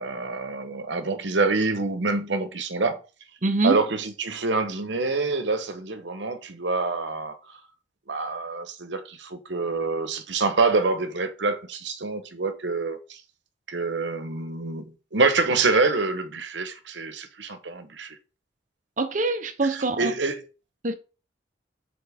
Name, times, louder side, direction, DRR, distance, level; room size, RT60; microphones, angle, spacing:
voice 1, 0.0-3.0 3.6-7.6 8.1-13.2 13.7-18.2 19.6-20.4, right 3 dB, 75° right, 0.9 m, -26 dB
voice 2, 3.4-3.8 19.0-20.1 20.8-20.9, right 2 dB, 45° right, 0.7 m, -24 dB
7.1 x 4.4 x 3.5 m
head